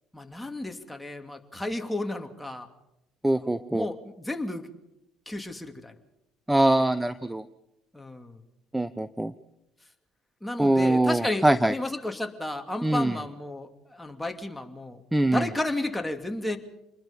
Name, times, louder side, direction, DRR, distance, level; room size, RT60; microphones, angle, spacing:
voice 1, 0.1-2.7 3.3-4.7 5.3-5.9 7.9-8.4 10.4-16.6, left 1 dB, 10° left, 5 dB, 2.7 m, -33 dB
voice 2, 3.2-3.9 6.5-7.4 8.7-9.3 10.6-11.7 12.8-13.2 15.1-15.5, right 1 dB, 10° right, 14 dB, 0.8 m, -23 dB
27.5 x 21.0 x 5.4 m, 0.87 s
hypercardioid pair, 65°, 0 cm